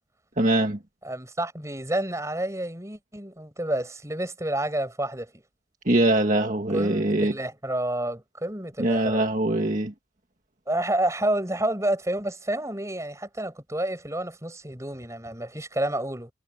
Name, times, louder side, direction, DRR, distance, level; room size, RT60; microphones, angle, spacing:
voice 1, 0.4-0.8 5.9-7.3 8.8-9.9, right 1 dB, 45° right, 1.9 m, -22 dB
voice 2, 1.0-5.3 6.7-9.3 10.7-16.3, right 1 dB, 15° right, 6.5 m, -29 dB
head